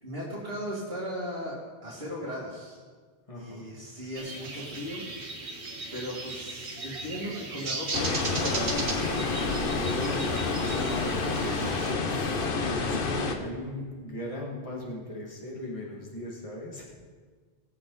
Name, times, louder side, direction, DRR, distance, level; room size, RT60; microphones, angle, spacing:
voice 1, 0.0-2.8 3.3-5.0 5.9-8.8 9.2-11.8, equal, 60° right, -8 dB, 2.6 m, -37 dB
voice 2, 3.3-3.8 12.1-16.8, left 1 dB, 30° left, -3 dB, 2.2 m, -38 dB
sound 1, 4.1-11.9, right 3 dB, 80° right, 1.6 m, -37 dB
sound 2, 7.9-13.3, left 4 dB, 55° left, 1.1 m, -28 dB
19.0 x 7.9 x 4.0 m, 1.5 s
omnidirectional pair, 1.1 m